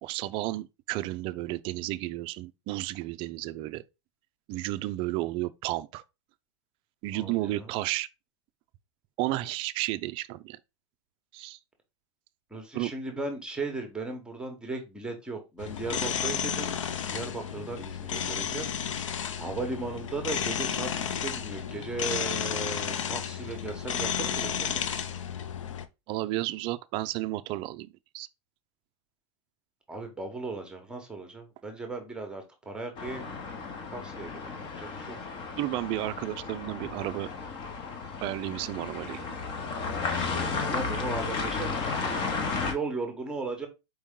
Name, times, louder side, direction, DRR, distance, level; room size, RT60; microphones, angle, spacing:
voice 1, 0.0-3.8 4.5-6.0 7.0-8.1 9.2-10.6 11.3-11.6 12.7-12.9 26.1-27.9 28.1-28.3 35.6-37.3 38.2-39.4, right 17 dB, 35° right, 0.4 m, -32 dB
voice 2, 7.1-7.7 12.5-16.8 17.1-18.7 19.4-25.0 29.9-33.3 33.9-35.2 40.3-42.3 42.6-43.7, right 3 dB, 5° right, 1.0 m, -37 dB
sound 1, 15.6-25.9, left 8 dB, 90° left, 0.6 m, -32 dB
sound 2, 33.0-42.7, left 4 dB, 30° left, 0.9 m, -33 dB
4.6 x 3.0 x 3.7 m
hypercardioid pair, 135°, 16 cm